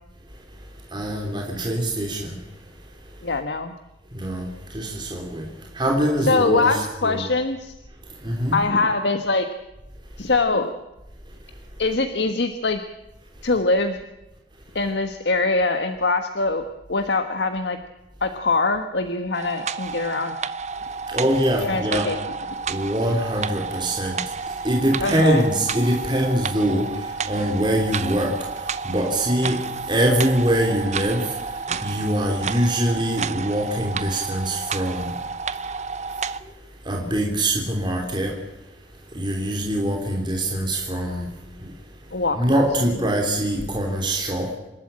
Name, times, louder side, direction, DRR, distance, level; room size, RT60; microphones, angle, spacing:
voice 1, 0.9-2.3 4.2-4.4 4.7-5.4 5.8-7.2 8.2-8.6 21.1-22.1 22.7-24.2 24.6-26.8 27.3-28.3 28.8-29.6 29.9-31.2 31.8-35.1 36.9-38.3 39.1-41.2 42.4-44.5, right 1 dB, 25° right, 1 dB, 3.2 m, -23 dB
voice 2, 3.2-3.7 6.3-7.7 8.5-9.5 10.2-10.8 11.8-12.8 13.4-14.0 14.7-17.8 18.2-20.4 21.7-22.2 25.0-25.4 42.1-42.4, left 3 dB, 80° left, 7 dB, 1.4 m, -23 dB
sound 1, 19.3-36.4, right 5 dB, 40° right, 0.8 m, -31 dB
27.5 x 13.0 x 8.9 m, 1.0 s
head